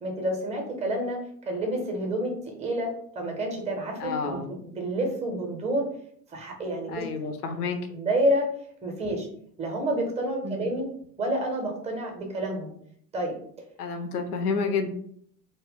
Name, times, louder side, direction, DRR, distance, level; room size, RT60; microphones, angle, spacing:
voice 1, 0.0-1.2 1.5-2.9 3.1-4.4 4.7-5.8 6.3-7.0 7.9-8.5 8.8-9.3 9.6-10.9 11.2-12.7 13.1-13.4, right 1 dB, 15° right, 1 dB, 0.6 m, -28 dB
voice 2, 4.0-4.5 6.9-7.8 10.4-10.7 13.8-14.9, left 5 dB, 70° left, 6 dB, 0.6 m, -29 dB
2.2 x 2.1 x 3.5 m, 0.64 s
figure-of-eight pair, 80°, 48 cm